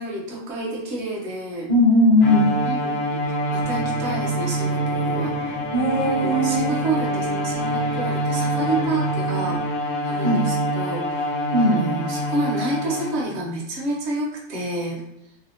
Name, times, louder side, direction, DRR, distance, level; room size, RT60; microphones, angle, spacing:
voice 1, 0.0-1.7 2.6-5.6 6.2-15.0, right 2 dB, 60° right, -2 dB, 1.1 m, -29 dB
voice 2, 1.7-2.5 5.7-6.7 10.2-10.4 11.5-11.8, left 1 dB, 35° left, -12 dB, 1.2 m, -18 dB
Bowed string instrument, 2.2-13.4, equal, 80° left, 1.0 m, -25 dB
sound 1, 3.2-9.7, right 2 dB, 10° right, 0.9 m, -38 dB
3.1 x 2.7 x 2.7 m, 0.83 s
omnidirectional pair, 1.4 m